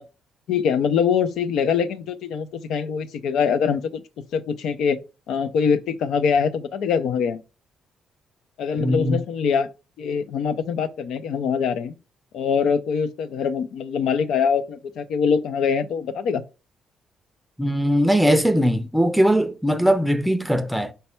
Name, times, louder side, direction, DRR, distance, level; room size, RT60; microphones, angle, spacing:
voice 1, 0.5-4.0 4.3-5.0 5.3-7.4 8.6-9.7 10.0-11.9 12.3-16.4, left 6 dB, 80° left, 0.4 m, -23 dB
voice 2, 8.8-9.2 17.6-20.9, equal, 5° right, 0.5 m, -20 dB
5.2 x 2.2 x 4.3 m
cardioid pair, 90°, 0 cm